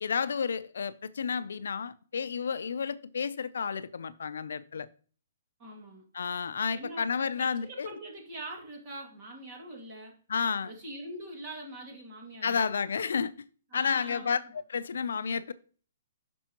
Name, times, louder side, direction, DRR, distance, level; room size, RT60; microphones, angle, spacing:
voice 1, 0.0-4.9 6.1-7.9 10.3-10.7 12.4-13.3 13.7-15.5, left 6 dB, 80° left, 0.5 m, -31 dB
voice 2, 5.6-6.0 6.7-10.1 10.6-12.7 13.7-14.5, right 1 dB, 20° right, 2.3 m, -43 dB
10.0 x 6.1 x 3.0 m
hypercardioid pair, 180°, 0 cm